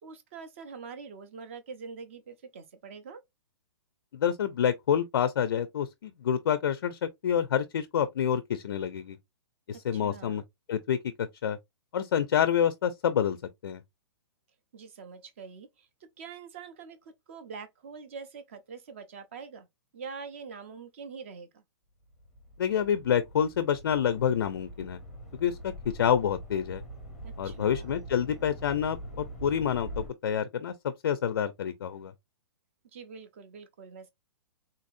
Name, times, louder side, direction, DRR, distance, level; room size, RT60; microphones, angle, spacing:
voice 1, 0.0-3.2 9.7-10.4 14.7-15.9 16.2-19.7 19.9-21.6 27.2-27.9 32.9-34.1, right 5 dB, 30° right, 0.5 m, -44 dB
voice 2, 4.1-9.2 9.7-10.4 10.7-11.6 11.9-13.4 13.6-13.8 22.6-25.0 25.4-25.7 26.0-26.8 27.4-32.1, left 8 dB, 50° left, 0.4 m, -28 dB
sound 1, 22.1-30.1, right 1 dB, 5° right, 0.9 m, -43 dB
3.8 x 2.6 x 2.5 m
hypercardioid pair, 175°, 15 cm